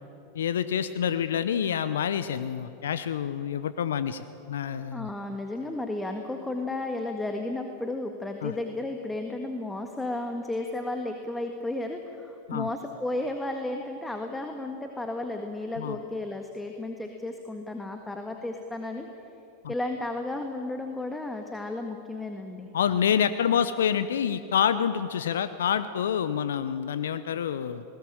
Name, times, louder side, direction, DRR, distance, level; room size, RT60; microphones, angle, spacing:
voice 1, 0.3-5.1 8.4-8.5 12.5-12.7 15.8-16.0 19.6-19.7 22.7-27.8, left 8 dB, 75° left, 13 dB, 0.8 m, -27 dB
voice 2, 4.9-19.1 19.7-22.7, left 2 dB, 10° left, 4 dB, 1.8 m, -33 dB
19.5 x 19.0 x 8.9 m, 3.0 s
hypercardioid pair, 95°, 0 cm